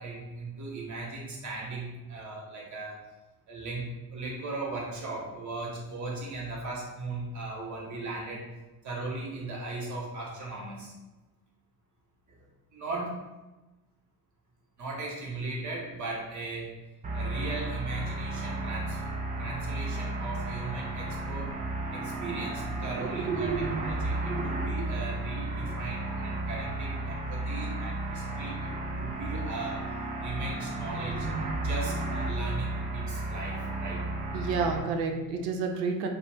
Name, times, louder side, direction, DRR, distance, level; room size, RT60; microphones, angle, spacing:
voice 1, 0.0-3.0 3.5-8.5 8.8-10.9 12.7-13.2 14.8-16.7 17.1-19.0 19.4-21.5 21.9-29.9 30.2-31.3 31.6-34.0, right 2 dB, 40° right, -3 dB, 0.9 m, -37 dB
sound 1, 17.0-34.8, right 2 dB, 20° right, 0.3 m, -33 dB
voice 2, 23.0-23.8 24.3-24.4 34.3-36.1, right 4 dB, 75° right, 3 dB, 0.6 m, -30 dB
2.4 x 2.0 x 3.3 m, 1.1 s
hypercardioid pair, 55°, 48 cm